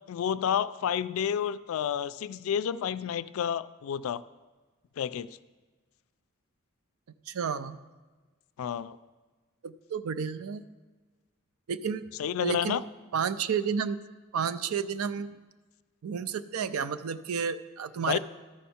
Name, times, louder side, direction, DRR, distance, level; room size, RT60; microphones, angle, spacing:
voice 1, 0.1-4.2 5.0-5.3 8.6-9.0 12.2-12.8 18.1-18.2, left 8 dB, 75° left, 15 dB, 0.3 m, -30 dB
voice 2, 7.3-7.8 9.6-10.6 11.7-12.1 12.4-12.8 13.1-14.0 14.3-15.3 16.0-18.2, right 6 dB, 85° right, 12 dB, 0.4 m, -31 dB
12.5 x 5.5 x 4.3 m, 1.3 s
head